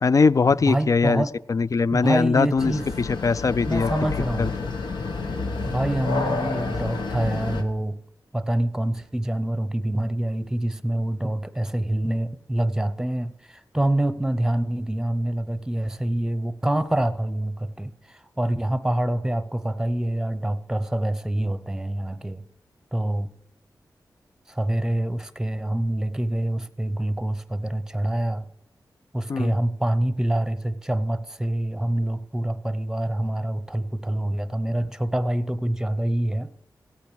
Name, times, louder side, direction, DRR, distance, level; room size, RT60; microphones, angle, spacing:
voice 1, 0.0-2.7 3.0-3.9 4.4-4.5 29.3-29.5, left 4 dB, 45° left, 18 dB, 0.3 m, -21 dB
voice 2, 0.7-1.3 1.9-2.9 3.6-4.6 5.7-8.0 8.3-22.4 22.9-23.3 24.5-28.5 29.1-36.5, right 1 dB, 5° right, 13 dB, 0.7 m, -26 dB
sound 1, 2.6-7.6, left 4 dB, 90° left, 1.1 m, -29 dB
15.5 x 8.4 x 4.7 m, 0.77 s
cardioid pair, 55°, 8 cm